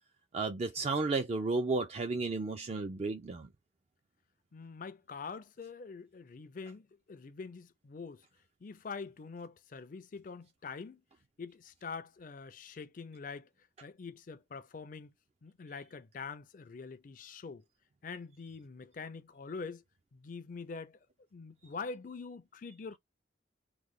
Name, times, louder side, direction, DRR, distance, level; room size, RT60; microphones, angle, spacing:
voice 1, 0.3-3.5, right 3 dB, 30° right, 0.3 m, -33 dB
voice 2, 4.5-8.2 8.6-11.0 11.4-13.5 13.8-15.1 15.4-17.6 18.0-19.8 20.1-21.0 21.3-23.0, left 4 dB, 40° left, 0.4 m, -44 dB
3.1 x 2.1 x 3.5 m
head